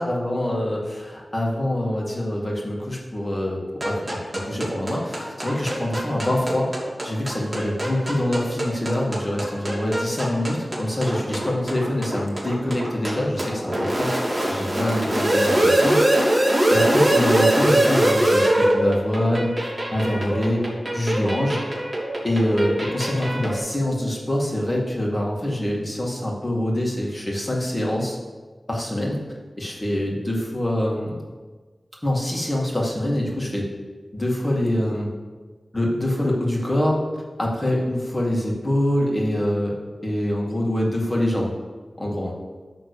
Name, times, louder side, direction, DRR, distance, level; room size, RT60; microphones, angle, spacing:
voice 1, 0.0-6.7 7.0-20.6 20.9-21.6 22.2-28.2 28.7-29.2 29.6-31.2 32.0-33.7 34.1-35.1 35.7-37.0 37.4-39.7 40.0-41.5 42.0-42.3, left 1 dB, 25° left, -2 dB, 2.2 m, -25 dB
sound 1, 3.8-23.6, right 1 dB, 30° right, 3.0 m, -23 dB
11.5 x 3.8 x 6.8 m, 1.4 s
wide cardioid pair, 65°, 0 cm